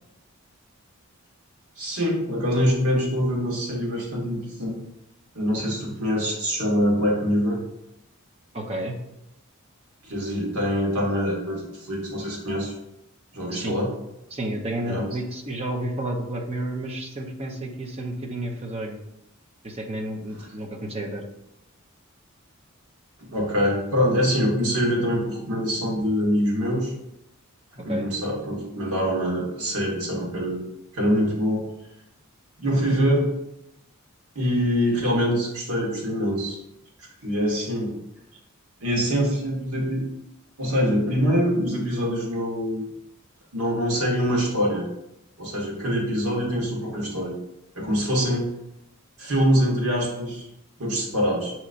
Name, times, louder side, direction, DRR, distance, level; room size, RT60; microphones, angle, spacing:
voice 1, 1.8-4.8 5.3-7.6 10.0-12.7 13.3-13.9 14.8-15.1 23.2-26.9 27.7-31.6 32.6-33.3 34.3-36.6 37.0-38.0 38.8-40.1 40.6-42.9 43.5-44.9 45.4-47.4 47.7-48.5 49.2-50.5 50.8-51.5, equal, 80° right, -2 dB, 1.4 m, -24 dB
voice 2, 8.5-9.0 13.5-13.8 14.3-19.0 19.6-21.2 27.9-28.1, right 1 dB, 30° right, 2 dB, 0.6 m, -31 dB
6.5 x 2.9 x 2.5 m, 0.83 s
head